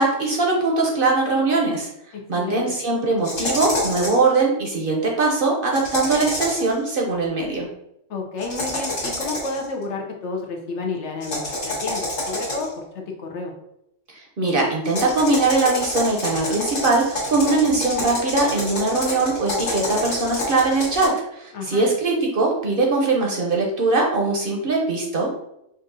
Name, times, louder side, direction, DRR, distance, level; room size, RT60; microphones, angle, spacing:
voice 1, 0.0-1.9 2.3-7.7 14.4-25.3, right 3 dB, 55° right, -1 dB, 0.8 m, -21 dB
voice 2, 2.3-2.7 8.1-13.5 21.5-21.9, left 3 dB, 65° left, 1 dB, 1.0 m, -31 dB
sound 1, 3.2-4.3 5.7-6.7 8.4-9.6 11.2-12.8 14.8-21.1, left 1 dB, 85° left, 1.7 m, -28 dB
5.4 x 2.4 x 2.6 m, 0.82 s
omnidirectional pair, 1.3 m